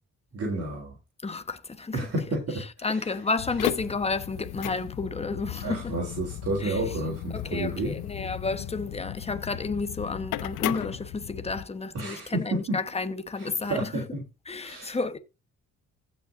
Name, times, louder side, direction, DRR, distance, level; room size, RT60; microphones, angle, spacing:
voice 1, 0.3-1.0 1.9-3.1 5.6-7.9 11.9-12.8 13.4-14.2 14.6-15.0, right 2 dB, 50° right, 3.7 m, -31 dB
voice 2, 1.2-2.0 2.8-6.0 6.6-6.8 7.3-14.1 14.5-15.2, left 3 dB, 20° left, 1.2 m, -31 dB
sound 1, 3.4-11.6, left 13 dB, 85° left, 0.7 m, -35 dB
15.5 x 5.8 x 2.7 m
cardioid pair, 90°, 30 cm